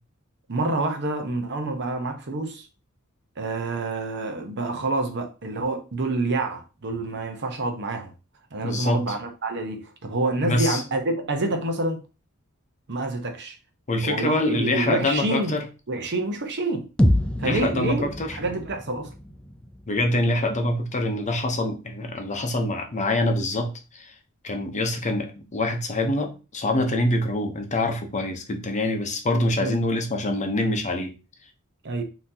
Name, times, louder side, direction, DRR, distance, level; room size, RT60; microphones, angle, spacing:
voice 1, 0.5-2.7 3.4-8.1 8.5-12.0 12.9-13.6 14.0-15.6 15.9-16.9 17.4-18.1 18.3-19.1 29.6-29.7 31.8-32.0, right 2 dB, 55° right, 0.9 m, -27 dB
voice 2, 8.6-9.0 10.4-10.8 13.9-15.7 17.4-18.4 19.9-24.2 24.4-31.1, left 1 dB, 35° left, 0.8 m, -25 dB
sound 1, 17.0-21.0, equal, 5° left, 0.4 m, -27 dB
5.7 x 2.9 x 2.8 m
head